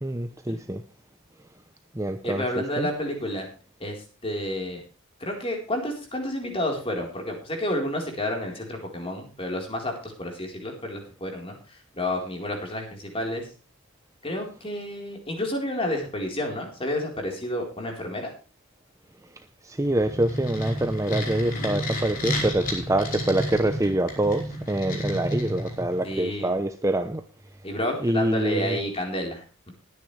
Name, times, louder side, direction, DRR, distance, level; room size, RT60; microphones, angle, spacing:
voice 1, 0.0-0.8 1.9-2.9 19.6-27.2 28.0-28.8, right 1 dB, 15° right, 0.7 m, -25 dB
voice 2, 2.2-3.5 3.8-4.8 5.2-13.5 14.2-18.3 26.0-26.5 27.6-29.4, left 1 dB, 25° left, 4.1 m, -30 dB
sound 1, 19.8-26.1, equal, 40° left, 5.0 m, -31 dB
20.5 x 9.7 x 3.3 m
head